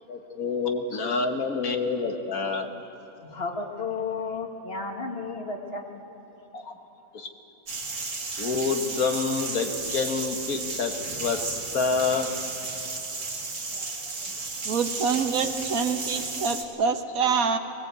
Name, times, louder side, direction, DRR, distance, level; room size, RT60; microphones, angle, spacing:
voice 1, 0.1-2.7 6.5-6.7 7.1-7.3 8.4-10.9 11.2-11.5 11.7-12.3, left 4 dB, 80° left, 5 dB, 2.0 m, -27 dB
voice 2, 3.2-5.9, left 4 dB, 45° left, 3 dB, 2.1 m, -33 dB
sound 1, 7.7-16.6, right 3 dB, 60° right, 2.3 m, -33 dB
voice 3, 14.6-17.6, right 5 dB, 80° right, 7 dB, 1.5 m, -26 dB
22.0 x 18.5 x 8.3 m, 2.9 s
omnidirectional pair, 1.5 m